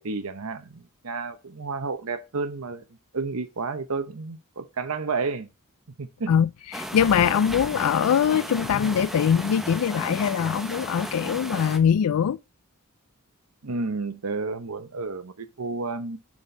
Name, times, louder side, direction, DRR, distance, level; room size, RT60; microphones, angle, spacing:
voice 1, 0.0-2.8 3.1-5.5 6.0-6.3 13.6-16.2, right 4 dB, 75° right, 0.9 m, -31 dB
voice 2, 6.7-12.4, left 8 dB, 90° left, 0.4 m, -22 dB
sound 1, 6.7-11.8, equal, ahead, 0.7 m, -35 dB
10.5 x 4.3 x 3.3 m
head